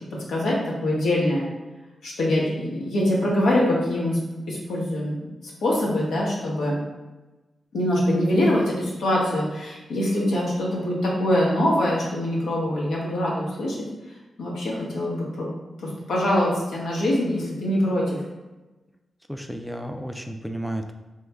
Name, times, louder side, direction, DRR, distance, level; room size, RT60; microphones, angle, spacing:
voice 1, 0.3-1.5 2.0-4.2 4.5-5.3 5.6-6.8 7.7-13.9 14.4-15.5 15.8-18.2, left 1 dB, 85° left, -4 dB, 0.8 m, -24 dB
voice 2, 19.3-20.9, right 1 dB, 5° right, 5 dB, 0.3 m, -32 dB
3.0 x 2.3 x 3.4 m, 1.1 s
supercardioid pair, 45°, 0 cm